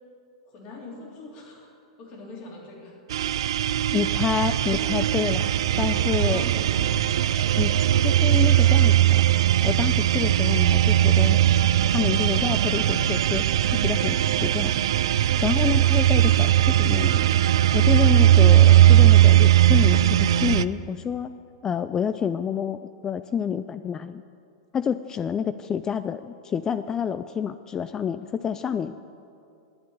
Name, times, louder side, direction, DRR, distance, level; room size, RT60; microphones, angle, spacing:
voice 1, 0.4-1.7 2.0-3.7 6.2-7.0 7.3-7.7, left 2 dB, 45° left, -2 dB, 3.4 m, -43 dB
sound 1, 3.1-20.6, right 12 dB, 70° right, 0.3 m, -19 dB
voice 2, 3.9-5.5 5.8-6.4 7.6-9.2 9.6-11.4 11.9-13.4 13.7-14.7 15.4-17.3 17.7-21.3 21.6-24.2 24.7-29.0, left 7 dB, 20° left, 12 dB, 0.3 m, -28 dB
9.7 x 8.4 x 8.9 m, 2.5 s
hypercardioid pair, 110°, 3 cm